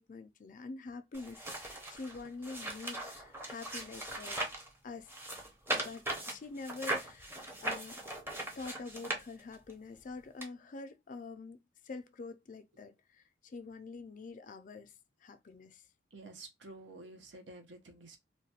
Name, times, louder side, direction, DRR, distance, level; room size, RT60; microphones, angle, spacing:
voice 1, 0.0-4.4 4.8-5.1 5.7-7.4 7.6-8.0 8.6-11.6 11.8-14.9 15.2-15.9, left 3 dB, 45° left, 0.4 m, -46 dB
sound 1, 1.1-4.7 5.1-9.7 10.4-10.5, right 1 dB, 10° right, 0.6 m, -39 dB
voice 2, 16.1-18.2, right 2 dB, 70° right, 0.8 m, -50 dB
3.1 x 2.2 x 2.8 m
head